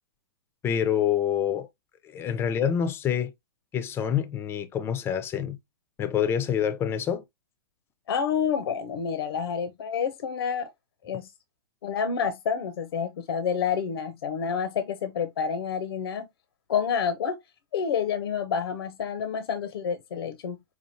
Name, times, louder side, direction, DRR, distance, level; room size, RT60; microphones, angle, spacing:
voice 1, 0.6-1.7 2.0-3.3 3.7-5.6 6.0-7.2, left 9 dB, 20° left, 0.5 m, -26 dB
voice 2, 8.1-10.7 11.0-11.3 11.8-16.3 16.7-17.4 17.7-20.6, left 7 dB, 80° left, 0.7 m, -28 dB
5.1 x 2.4 x 2.7 m
hypercardioid pair, 135°, 13 cm